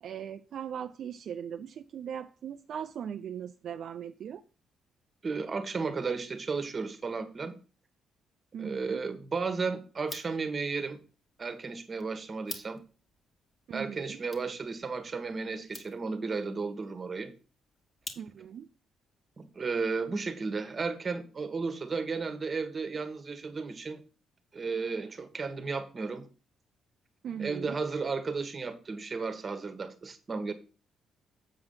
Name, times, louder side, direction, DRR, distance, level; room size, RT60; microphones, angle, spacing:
voice 1, 0.0-4.4 8.5-9.0 13.7-14.2 18.2-18.7 27.2-27.8, right 8 dB, 65° right, 0.4 m, -39 dB
voice 2, 5.2-7.5 8.6-11.0 11.4-12.8 13.7-17.3 19.4-24.0 24.5-26.3 27.4-30.5, right 4 dB, 35° right, 1.3 m, -34 dB
sound 1, 9.9-18.7, left 2 dB, 35° left, 1.5 m, -50 dB
7.6 x 4.9 x 5.5 m
cardioid pair, 90°, 0 cm